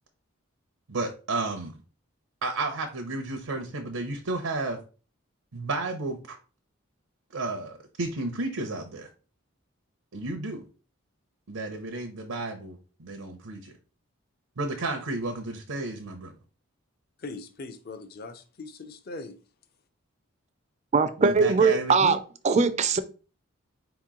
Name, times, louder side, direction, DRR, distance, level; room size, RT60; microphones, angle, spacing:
voice 1, 0.9-1.8 2.4-4.8 5.5-6.4 7.3-9.1 10.1-10.7 11.5-13.7 14.6-16.3 21.2-22.2, right 2 dB, 85° right, 0.7 m, -32 dB
voice 2, 17.2-19.4, left 3 dB, 45° left, 0.5 m, -40 dB
voice 3, 20.9-22.2 22.4-23.0, right 4 dB, 30° right, 0.3 m, -21 dB
4.4 x 3.0 x 3.6 m
head